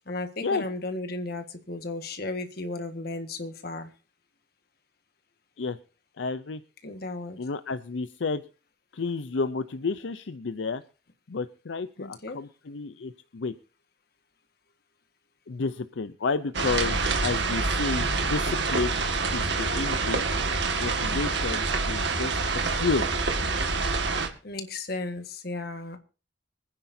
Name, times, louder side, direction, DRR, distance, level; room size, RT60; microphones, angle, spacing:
voice 1, 0.1-3.9 6.8-7.4 12.0-12.4 24.4-26.0, left 2 dB, 55° left, 7 dB, 1.6 m, -34 dB
voice 2, 6.2-6.6 7.4-8.4 8.9-10.8 11.3-13.5 15.5-18.9 19.3-20.3 20.8-23.1, left 4 dB, 80° left, 11 dB, 0.6 m, -31 dB
sound 1, 16.5-24.3, right 3 dB, 65° right, 1.9 m, -27 dB
25.0 x 9.8 x 2.7 m, 0.35 s
head